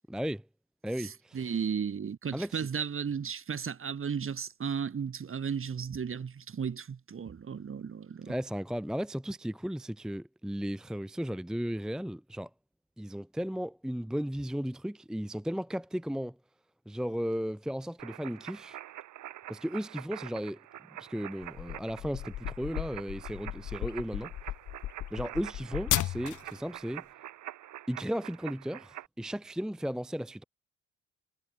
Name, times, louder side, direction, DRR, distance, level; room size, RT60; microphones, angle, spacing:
voice 1, 0.1-0.4 0.8-1.6 2.3-2.7 8.3-12.5 13.0-16.4 16.9-18.8 19.5-20.6 21.0-24.3 25.1-27.0 27.9-30.4, equal, ahead, 0.6 m, -35 dB
voice 2, 1.0-8.3, right 6 dB, 45° right, 4.5 m, -35 dB
sound 1, 18.0-29.1, right 13 dB, 75° right, 2.0 m, -46 dB
sound 2, 21.4-26.6, left 14 dB, 80° left, 2.0 m, -35 dB
cardioid pair, 90°, 30 cm